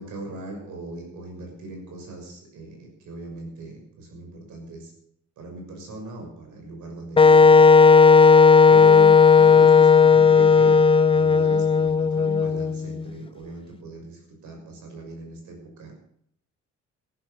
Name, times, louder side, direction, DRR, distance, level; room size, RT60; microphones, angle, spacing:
voice 1, 0.0-4.9 5.4-7.6 8.7-15.9, right 2 dB, 75° right, 3 dB, 6.4 m, -39 dB
Wind instrument woodwind instrument, 7.2-13.0, left 5 dB, 20° left, 0.6 m, -14 dB
14.5 x 11.5 x 6.5 m, 0.67 s
cardioid pair, 90°, 30 cm